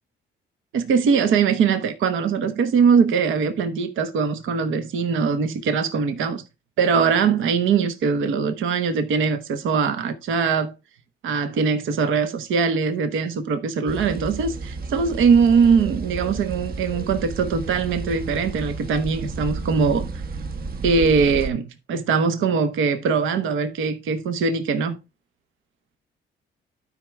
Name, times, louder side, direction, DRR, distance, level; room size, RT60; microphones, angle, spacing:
voice 1, 0.7-6.4 6.8-10.7 11.2-20.1 20.8-25.0, right 5 dB, 80° right, 1.0 m, -21 dB
sound 1, 13.9-21.5, right 3 dB, 50° right, 1.0 m, -32 dB
12.0 x 5.1 x 3.4 m
cardioid pair, 90°, 20 cm